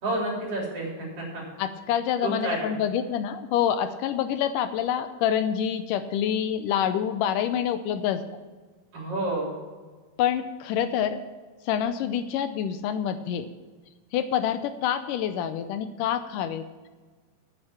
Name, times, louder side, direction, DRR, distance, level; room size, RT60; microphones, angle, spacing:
voice 1, 0.0-1.4 2.2-2.7 8.9-9.5, right 2 dB, 45° right, -3 dB, 4.6 m, -30 dB
voice 2, 1.6-8.2 10.2-11.2 11.7-13.5 14.1-16.9, left 9 dB, 85° left, 10 dB, 2.2 m, -27 dB
9.6 x 8.8 x 7.2 m, 1.4 s
omnidirectional pair, 3.9 m